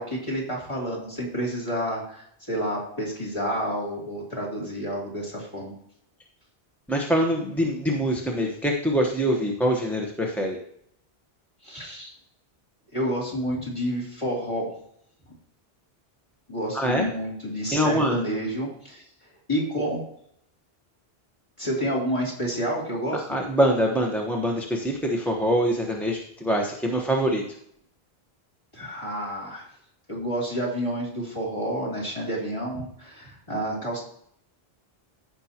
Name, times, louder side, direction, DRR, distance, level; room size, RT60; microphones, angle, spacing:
voice 1, 0.0-5.7 11.6-12.1 12.9-14.7 16.5-19.0 19.5-20.0 21.6-23.2 28.7-29.7 30.1-34.0, equal, 30° left, -3 dB, 3.0 m, -29 dB
voice 2, 6.9-10.6 16.7-17.1 17.7-18.2 23.1-27.4, equal, ahead, 0 dB, 1.0 m, -24 dB
15.5 x 5.5 x 2.9 m, 0.69 s
omnidirectional pair, 1.0 m